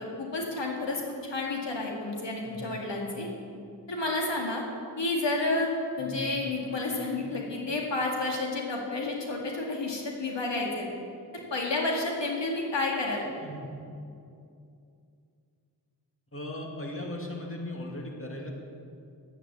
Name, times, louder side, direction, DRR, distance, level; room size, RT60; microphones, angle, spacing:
voice 1, 0.0-3.3 3.9-4.6 5.0-5.7 6.0-10.9 11.3-13.2, left 2 dB, 90° left, -1 dB, 2.0 m, -30 dB
voice 2, 6.0-6.3 7.2-7.3 13.4-13.7 16.3-18.5, left 1 dB, 30° left, 0 dB, 2.3 m, -38 dB
10.5 x 9.8 x 8.3 m, 2.5 s
wide cardioid pair, 60°, 42 cm